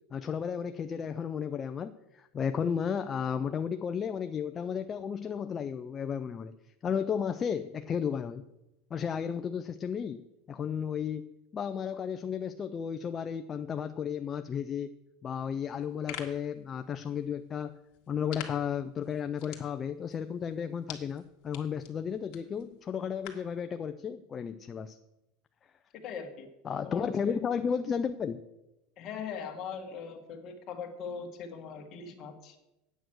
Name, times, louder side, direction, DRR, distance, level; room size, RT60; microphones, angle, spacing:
voice 1, 0.1-6.5 6.8-8.5 8.9-10.2 10.5-11.3 11.5-14.9 15.2-17.8 18.1-25.0 26.6-28.4, left 7 dB, 25° left, 9 dB, 0.4 m, -33 dB
sound 1, 15.7-23.6, left 10 dB, 60° left, 1.8 m, -49 dB
voice 2, 25.9-26.5 26.8-27.4 29.0-32.6, left 6 dB, 40° left, 3 dB, 1.7 m, -40 dB
9.2 x 7.7 x 6.3 m, 0.93 s
supercardioid pair, 135°, 0 cm